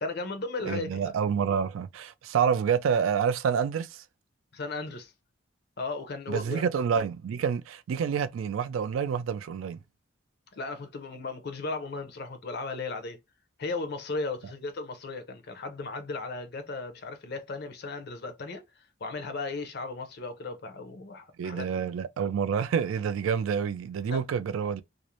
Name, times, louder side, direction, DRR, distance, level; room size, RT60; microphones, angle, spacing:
voice 1, 0.0-1.1 4.5-5.1 5.8-6.7 10.5-13.2 13.6-21.8 24.1-24.2, left 3 dB, 55° left, 0.6 m, -36 dB
voice 2, 0.6-4.0 6.3-9.8 21.4-24.8, right 7 dB, 80° right, 0.3 m, -28 dB
2.5 x 2.0 x 2.8 m
head